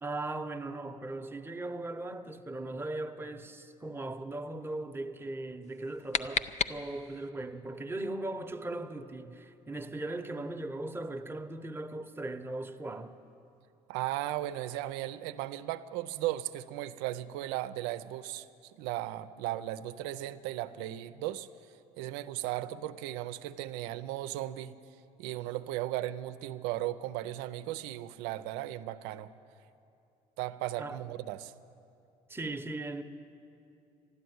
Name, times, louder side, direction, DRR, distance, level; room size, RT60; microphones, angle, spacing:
voice 1, 0.0-13.2 30.8-31.0 32.3-33.0, right 2 dB, 15° right, 0.9 m, -38 dB
sound 1, 5.6-7.3, left 7 dB, 40° left, 0.5 m, -34 dB
voice 2, 13.9-21.5 22.0-24.8 25.2-29.3 30.4-31.5, right 14 dB, 85° right, 0.5 m, -36 dB
12.5 x 12.0 x 9.4 m
supercardioid pair, 80°, 17 cm